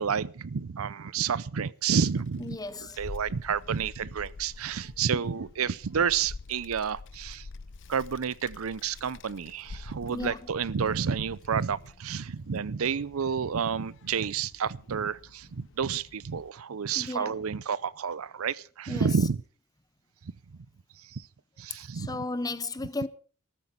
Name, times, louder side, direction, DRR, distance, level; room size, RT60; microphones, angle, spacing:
voice 1, 0.0-7.5 7.9-19.4 20.2-20.7 21.0-21.3 21.6-22.2, right 6 dB, 70° right, 0.6 m, -30 dB
Child speech kid speaking, 2.1-16.5, left 3 dB, 60° left, 0.6 m, -47 dB
voice 2, 2.4-3.0 10.1-10.4 17.0-17.4 18.9-19.1 21.9-23.1, left 2 dB, 20° left, 0.8 m, -34 dB
14.0 x 13.5 x 5.4 m
head